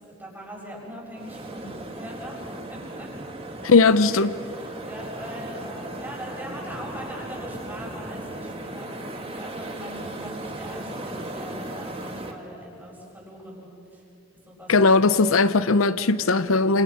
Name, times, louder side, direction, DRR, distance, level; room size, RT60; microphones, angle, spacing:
voice 1, 0.2-1.6 2.0-2.4 2.7-3.1 3.6-3.8 4.1-13.7 13.9-14.0 14.5-14.9, equal, 10° right, -3 dB, 7.2 m, -40 dB
sound 1, 1.2-12.3, right 1 dB, 30° right, 2.0 m, -37 dB
voice 2, 3.6-4.3 14.7-16.8, left 3 dB, 85° left, 14 dB, 0.7 m, -18 dB
29.5 x 26.5 x 6.1 m, 2.7 s
head